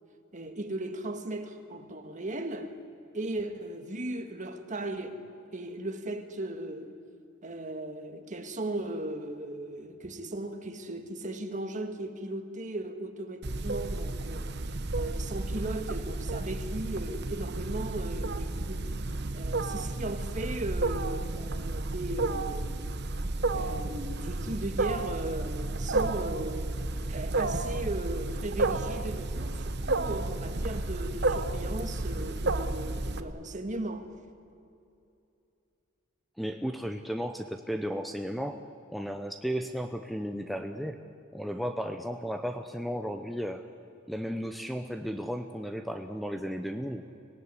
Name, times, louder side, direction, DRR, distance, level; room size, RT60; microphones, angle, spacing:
voice 1, 0.3-2.8 3.1-5.2 5.5-7.0 7.4-14.6 15.0-18.8 19.3-23.0 23.5-34.1, right 1 dB, 40° right, 1.8 m, -37 dB
Wild animals, 13.4-33.2, right 2 dB, 55° right, 1.1 m, -32 dB
voice 2, 36.4-38.6 38.9-41.0 41.3-43.6 44.1-47.0, equal, ahead, 0.8 m, -34 dB
25.0 x 18.0 x 9.8 m
head